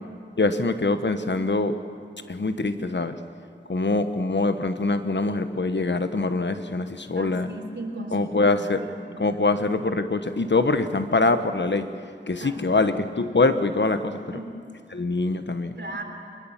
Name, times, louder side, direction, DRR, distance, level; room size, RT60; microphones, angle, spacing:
voice 1, 0.4-1.7 2.3-3.2 3.7-7.5 8.1-8.8 9.2-11.9 12.3-14.2 14.9-15.7, left 3 dB, 60° left, 9 dB, 1.1 m, -24 dB
voice 2, 7.2-9.2 12.4-12.9 14.3-14.5 15.8-16.0, right 1 dB, 60° right, 3 dB, 3.5 m, -37 dB
22.5 x 21.0 x 7.2 m, 2.3 s
wide cardioid pair, 50°, 21 cm